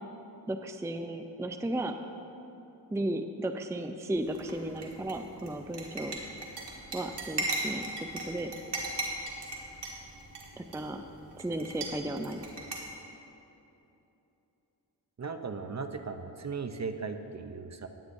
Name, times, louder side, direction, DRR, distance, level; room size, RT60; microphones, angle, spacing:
voice 1, 0.5-1.9 2.9-6.2 6.9-8.5 10.6-11.0 11.4-12.4, right 1 dB, 5° right, 7 dB, 0.5 m, -34 dB
sound 1, 4.1-12.8, right 2 dB, 75° right, 1.9 m, -39 dB
voice 2, 15.2-17.9, right 4 dB, 40° right, 7 dB, 0.7 m, -37 dB
16.5 x 9.7 x 2.7 m, 2.9 s
cardioid pair, 60°, 41 cm